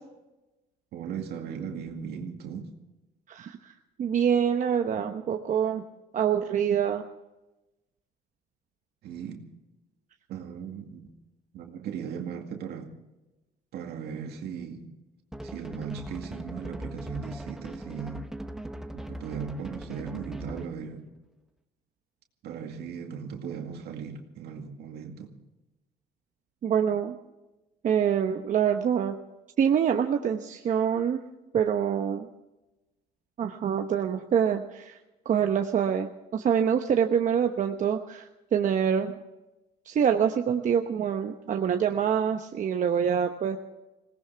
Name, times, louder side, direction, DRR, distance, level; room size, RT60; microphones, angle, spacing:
voice 1, 0.9-2.7 9.0-9.4 10.3-11.1 11.5-12.9 13.7-14.9 15.4-18.2 18.9-21.1 22.4-25.3, right 7 dB, 75° right, 2.2 m, -37 dB
voice 2, 3.3-3.7 4.0-5.8 6.1-7.0 26.6-27.2 27.8-29.2 29.6-31.2 31.5-32.3 33.4-35.0 35.2-39.1 39.9-43.6, right 8 dB, 50° right, 1.0 m, -25 dB
sound 1, 15.3-20.8, right 1 dB, 5° right, 0.9 m, -40 dB
20.5 x 18.5 x 3.5 m
cardioid pair, 110°, 17 cm